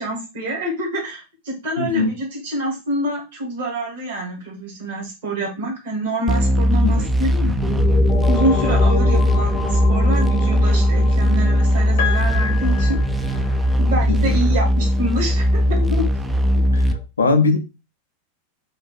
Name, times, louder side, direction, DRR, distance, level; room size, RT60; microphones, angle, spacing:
voice 1, 0.0-7.6 8.2-13.0 13.8-16.0 16.5-16.6, right 1 dB, 55° right, 1.5 m, -26 dB
voice 2, 1.8-2.1 6.8-7.1 14.1-14.4 16.7-16.8 17.2-17.6, left 4 dB, 75° left, 0.6 m, -19 dB
sound 1, 6.3-16.9, equal, 10° right, 0.4 m, -18 dB
sound 2, 7.4-17.0, left 5 dB, 25° left, 0.7 m, -29 dB
Piano, 12.0-14.0 15.3-15.4, left 8 dB, 60° left, 1.0 m, -29 dB
5.1 x 2.5 x 2.4 m
figure-of-eight pair, 90°, 0 cm